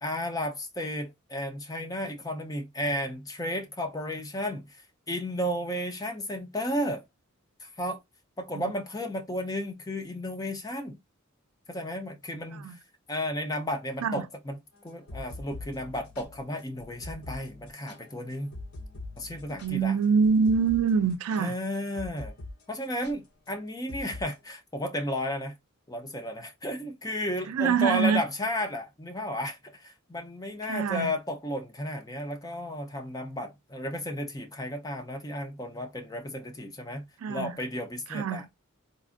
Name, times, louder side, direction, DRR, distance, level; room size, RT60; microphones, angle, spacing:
voice 1, 0.0-4.8 5.1-7.0 7.6-8.0 8.4-11.0 11.7-12.7 13.1-14.6 14.8-18.5 19.2-20.0 21.4-22.3 22.7-25.6 25.9-38.4, equal, 15° left, 0.6 m, -33 dB
sound 1, 14.9-22.6 22.8-23.1 23.9-24.3, left 2 dB, 80° left, 1.0 m, -43 dB
voice 2, 19.6-21.5 27.5-28.2 30.7-31.2 37.2-37.6 38.1-38.5, right 5 dB, 90° right, 0.4 m, -25 dB
3.9 x 2.5 x 2.5 m
head